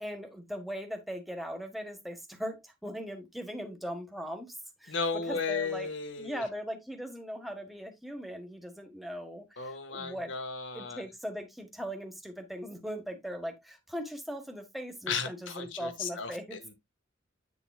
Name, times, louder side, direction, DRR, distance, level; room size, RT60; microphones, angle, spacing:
voice 1, 0.0-5.0 5.3-5.9 6.2-10.3 10.7-16.6, equal, ahead, 1.6 m, -39 dB
voice 2, 4.9-6.4 9.6-11.0 15.1-16.7, left 5 dB, 80° left, 1.6 m, -35 dB
9.2 x 6.9 x 2.3 m
head